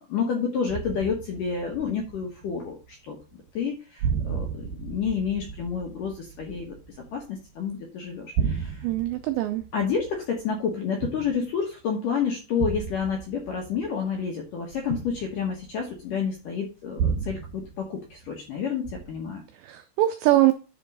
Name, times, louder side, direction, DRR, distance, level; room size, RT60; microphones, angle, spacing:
voice 1, 0.1-3.2 3.5-6.7 7.1-8.9 9.7-19.4, left 6 dB, 70° left, 2.1 m, -29 dB
sound 1, 0.7-2.9 3.2-3.7 4.0-7.7 8.1-11.7 12.6-16.1 17.0-18.5 18.8-19.4, right 7 dB, 60° right, 2.9 m, -33 dB
voice 2, 8.8-9.6 19.6-20.5, right 15 dB, 90° right, 2.5 m, -22 dB
11.0 x 4.5 x 5.4 m
omnidirectional pair, 5.8 m